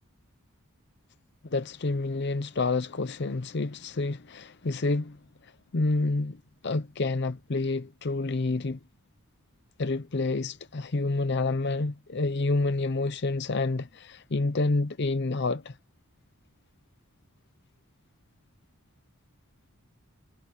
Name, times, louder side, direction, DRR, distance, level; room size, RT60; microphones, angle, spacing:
voice 1, 1.5-5.2 5.7-8.8 9.8-15.7, left 3 dB, 50° left, 0.7 m, -28 dB
head